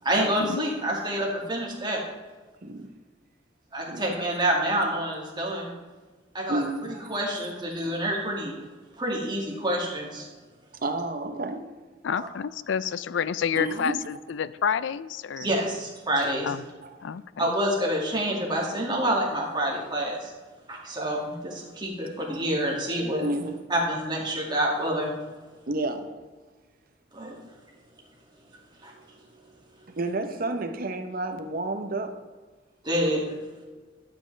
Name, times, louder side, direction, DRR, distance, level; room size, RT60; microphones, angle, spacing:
voice 1, 0.0-2.0 3.7-5.7 6.3-6.6 7.1-8.5 9.0-10.3 12.2-12.3 15.4-16.5 17.4-20.3 20.7-23.2 23.7-25.1 27.1-27.4 28.8-29.5 29.8-29.9 32.8-33.4, right 1 dB, 25° right, 2.1 m, -27 dB
voice 2, 3.9-4.2 6.5-7.1 10.8-11.7 13.6-14.0 16.8-16.9 23.2-23.6 25.7-26.2 30.0-32.3, right 2 dB, 50° right, 0.8 m, -31 dB
voice 3, 12.0-15.5 16.4-16.6 17.0-17.5, left 7 dB, 75° left, 0.4 m, -29 dB
12.0 x 7.7 x 3.3 m
head